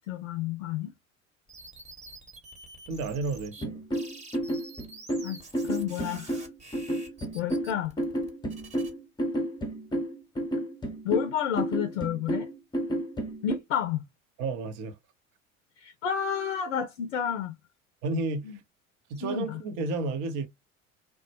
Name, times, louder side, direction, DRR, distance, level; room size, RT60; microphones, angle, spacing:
voice 1, 0.1-0.9 5.2-6.4 7.3-7.9 11.0-12.5 13.4-14.0 15.8-17.5 18.4-18.6 19.2-19.6, left 9 dB, 65° left, 0.5 m, -30 dB
sound 1, 1.5-3.7 3.9-8.9, right 2 dB, 15° right, 0.9 m, -48 dB
voice 2, 2.9-3.8 14.4-15.0 18.0-18.6 19.1-20.5, right 3 dB, 45° right, 0.6 m, -31 dB
sound 2, 3.6-13.6, right 1 dB, 10° left, 0.7 m, -31 dB
3.1 x 2.1 x 2.8 m
figure-of-eight pair, 65°, 40 cm